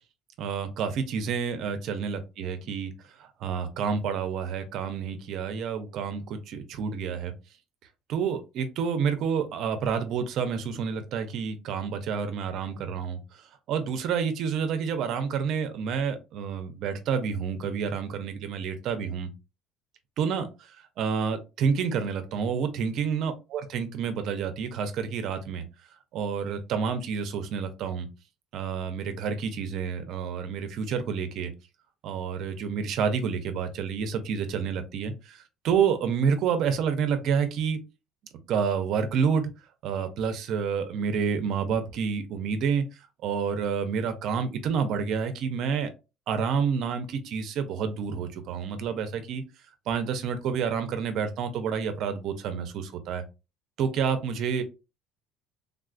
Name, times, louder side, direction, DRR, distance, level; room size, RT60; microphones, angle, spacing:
voice 1, 0.4-2.9 3.2-7.3 8.1-13.2 13.7-19.3 20.2-20.7 21.0-25.6 26.1-28.1 28.5-31.5 32.0-37.8 38.5-39.5 39.8-42.8 43.2-45.9 46.3-49.4 49.9-53.2 53.8-54.6, right 6 dB, 55° right, 9 dB, 0.5 m, -29 dB
3.5 x 2.3 x 2.4 m, 0.28 s
cardioid pair, 145°, 0 cm